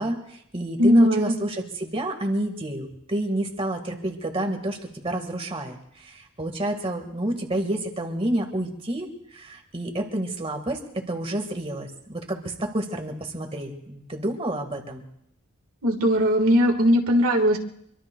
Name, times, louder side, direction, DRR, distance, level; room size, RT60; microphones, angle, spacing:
voice 1, 0.0-15.0, right 1 dB, 25° right, 4 dB, 1.6 m, -29 dB
voice 2, 0.8-1.3 15.8-17.6, equal, 75° right, 3 dB, 1.6 m, -19 dB
25.0 x 23.5 x 2.3 m, 0.74 s
head